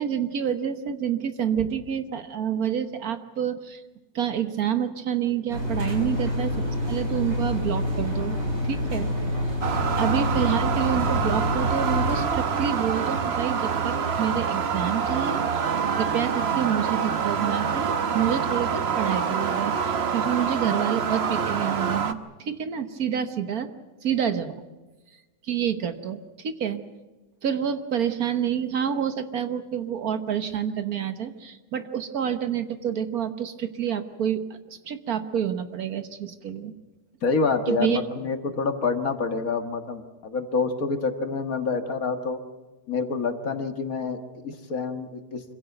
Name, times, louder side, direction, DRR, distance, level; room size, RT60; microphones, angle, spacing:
voice 1, 0.0-3.8 4.1-8.4 8.6-9.1 10.0-23.7 24.0-24.6 25.4-26.8 27.4-36.7 37.7-38.0, right 9 dB, 60° right, 10 dB, 1.5 m, -28 dB
Engine, 5.5-12.2, left 1 dB, 85° right, 7.5 m, -27 dB
sound 1, 9.6-22.1, right 6 dB, 45° right, 1.0 m, -26 dB
voice 2, 37.2-42.4 42.9-45.4, left 4 dB, 55° left, 7 dB, 2.0 m, -27 dB
25.0 x 16.5 x 9.1 m, 1.2 s
omnidirectional pair, 1.8 m